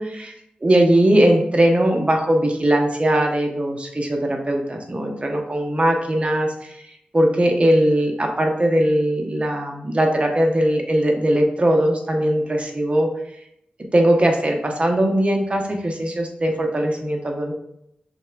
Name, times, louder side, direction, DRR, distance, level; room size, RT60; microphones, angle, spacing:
voice 1, 0.0-0.3 0.6-6.8 7.1-13.1 13.9-17.5, right 1 dB, 35° right, 2 dB, 0.8 m, -20 dB
6.2 x 2.2 x 2.5 m, 0.76 s
cardioid pair, 55°, 3 cm